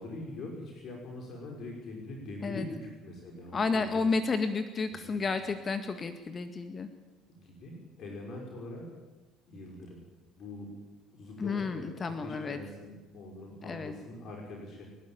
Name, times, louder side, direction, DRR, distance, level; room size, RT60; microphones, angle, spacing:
voice 1, 0.0-4.1 4.9-5.0 7.4-8.9 9.5-10.0 10.4-10.7 11.1-14.9, left 2 dB, 50° left, 0 dB, 6.2 m, -43 dB
voice 2, 3.5-6.9 11.4-12.6 13.6-13.9, left 4 dB, 35° left, 9 dB, 1.8 m, -31 dB
29.5 x 12.0 x 9.1 m, 1.2 s
figure-of-eight pair, 55°, 0 cm